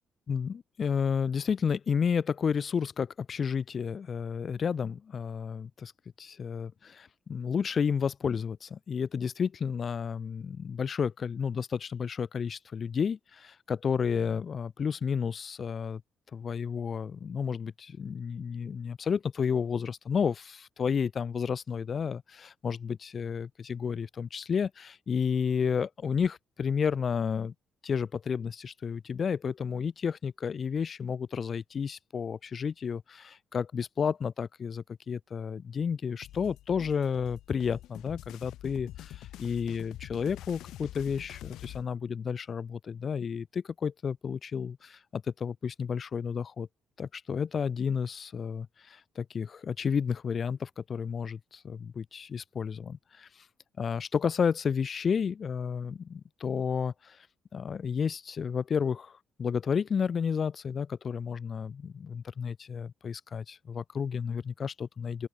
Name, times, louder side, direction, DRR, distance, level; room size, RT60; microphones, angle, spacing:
voice 1, 0.3-5.9 6.2-16.0 16.3-27.5 27.8-46.7 47.0-53.3 53.8-57.2 57.5-65.3, left 6 dB, 45° left, 2.1 m, -31 dB
sound 1, 36.2-41.8, left 14 dB, 85° left, 7.8 m, -45 dB
open air
cardioid pair, 90°, 0 cm